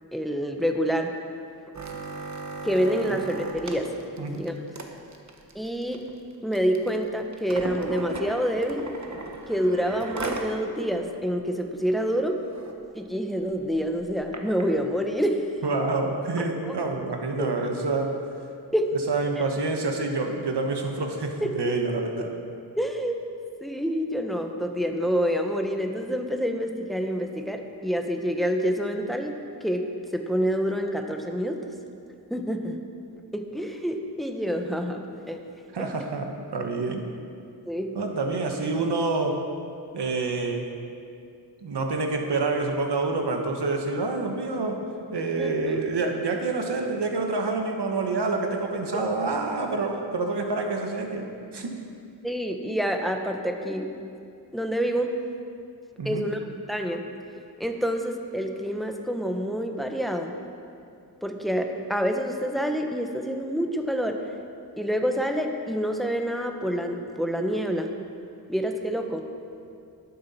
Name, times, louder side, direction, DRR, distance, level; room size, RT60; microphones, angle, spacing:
voice 1, 0.1-1.1 2.6-3.9 4.3-4.5 5.5-6.0 6.4-8.9 9.5-12.4 12.9-15.4 16.6-16.7 17.4-17.5 18.7-18.9 21.4-21.7 22.8-23.2 23.6-29.3 29.6-29.9 30.1-31.7 32.3-32.8 33.3-35.4 35.8-35.9 37.7-38.0 45.4-45.8 52.2-53.9 54.5-55.1 56.0-56.4 56.7-57.0 57.6-60.4 61.2-64.2 64.8-67.9 68.5-69.2, equal, ahead, 4 dB, 0.9 m, -27 dB
sound 1, 1.7-10.5 10.9-11.0 11.3-11.6 12.1-12.2 12.4-12.7 13.4-14.6 15.4-15.5, right 3 dB, 45° right, 1.1 m, -37 dB
voice 2, 15.6-18.1 19.1-22.3 35.7-37.1 37.9-39.4 39.9-40.7 41.6-44.8 45.1-51.3 51.5-51.9 56.0-56.2, right 3 dB, 80° right, 3 dB, 1.3 m, -27 dB
11.5 x 10.0 x 4.2 m, 2.4 s
wide cardioid pair, 75°, 40 cm